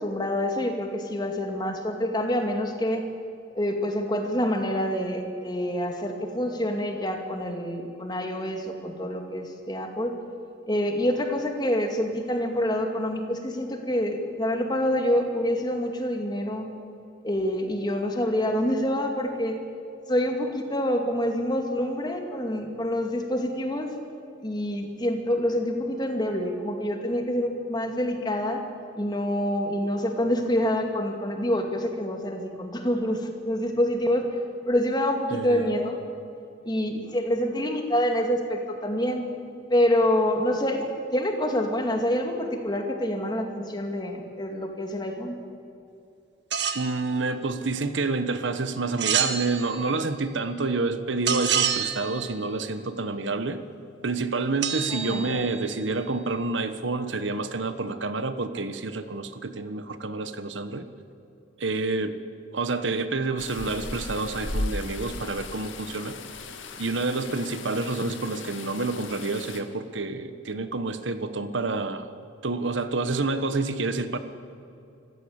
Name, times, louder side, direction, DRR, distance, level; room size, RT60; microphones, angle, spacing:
voice 1, 0.0-3.0 3.6-10.2 10.7-16.7 17.2-19.6 20.1-23.9 24.4-28.6 29.0-34.3 34.7-36.0 36.6-39.2 39.7-45.3 54.9-55.5, equal, 20° left, 4 dB, 2.3 m, -27 dB
voice 2, 35.3-35.7 46.7-53.6 54.0-60.9 61.6-62.2 62.5-66.2 66.8-72.1 72.4-74.2, right 3 dB, 80° right, 10 dB, 1.3 m, -28 dB
sound 1, 46.5-46.9 49.0-50.0 51.3-52.3 54.6-55.8, right 7 dB, 60° right, 1.7 m, -27 dB
sound 2, 63.4-69.6, left 2 dB, 90° left, 2.1 m, -36 dB
25.5 x 15.0 x 8.7 m, 2.7 s
head